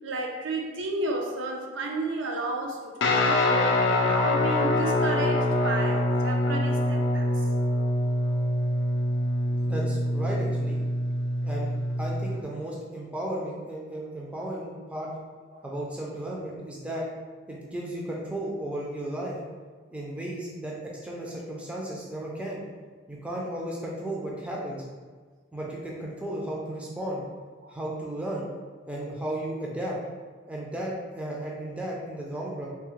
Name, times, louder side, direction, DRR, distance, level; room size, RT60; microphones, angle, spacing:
voice 1, 0.0-7.5 15.5-15.6 27.6-27.7, right 2 dB, 75° right, 1 dB, 0.4 m, -32 dB
Guitar, 3.0-12.4, left 1 dB, 65° left, 0.4 m, -25 dB
voice 2, 9.5-10.8 11.4-11.7 12.0-15.1 15.6-17.0 17.5-19.4 19.9-20.7 21.0-22.6 23.1-24.8 25.5-27.3 27.7-28.5 28.9-30.0 30.5-32.7, right 1 dB, 5° right, -4 dB, 0.3 m, -34 dB
3.3 x 2.1 x 3.0 m, 1.5 s
head